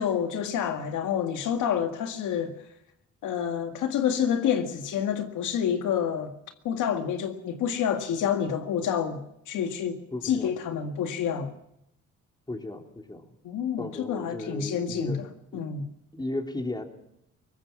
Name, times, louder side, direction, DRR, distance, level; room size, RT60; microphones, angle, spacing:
voice 1, 0.0-2.5 3.2-6.3 6.6-10.0 10.2-11.5 13.4-15.3 15.5-15.8, left 8 dB, 85° left, 1.9 m, -28 dB
voice 2, 10.1-10.5 12.5-13.2 13.8-15.2 15.5-15.7 16.1-16.8, left 2 dB, 15° left, 3.5 m, -35 dB
22.5 x 19.0 x 6.0 m
cardioid pair, 90°, 30 cm